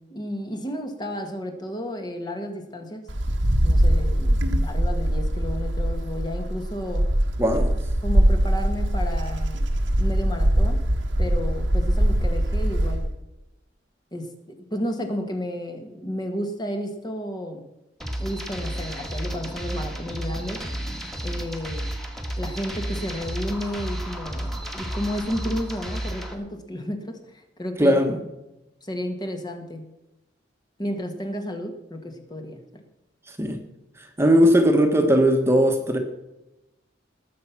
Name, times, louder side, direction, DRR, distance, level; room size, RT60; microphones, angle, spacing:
voice 1, 0.0-3.0 3.6-7.1 8.0-9.6 10.0-10.8 11.2-13.1 14.1-17.7 18.2-20.6 21.2-21.9 22.4-28.0 28.8-29.9 30.8-32.8, equal, 20° left, 5 dB, 1.6 m, -32 dB
Wind, 3.1-13.1, right 1 dB, 80° right, 1.5 m, -22 dB
voice 2, 7.4-7.7 27.8-28.2 33.3-33.6 34.0-36.0, equal, 15° right, 4 dB, 1.4 m, -19 dB
sound 1, 18.0-26.3, right 1 dB, ahead, 1.8 m, -32 dB
20.0 x 7.5 x 5.9 m, 0.97 s
head